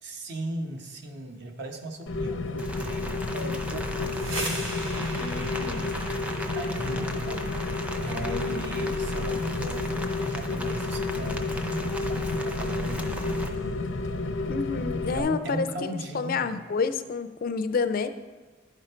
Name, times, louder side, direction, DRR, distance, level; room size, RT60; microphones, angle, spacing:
voice 1, 0.0-4.2 6.5-7.5 8.0-13.6 15.1-16.6, right 1 dB, 60° right, 4 dB, 0.9 m, -37 dB
Rain, 2.1-15.2, left 3 dB, 85° left, 0.6 m, -30 dB
Rain 2, 2.6-13.5, equal, 5° right, 0.5 m, -38 dB
sound 1, 3.9-13.6, right 1 dB, 90° right, 1.4 m, -42 dB
voice 2, 5.2-5.8 8.3-8.8 14.5-18.1, left 5 dB, 50° left, 10 dB, 0.4 m, -29 dB
10.5 x 5.0 x 4.3 m, 1.4 s
head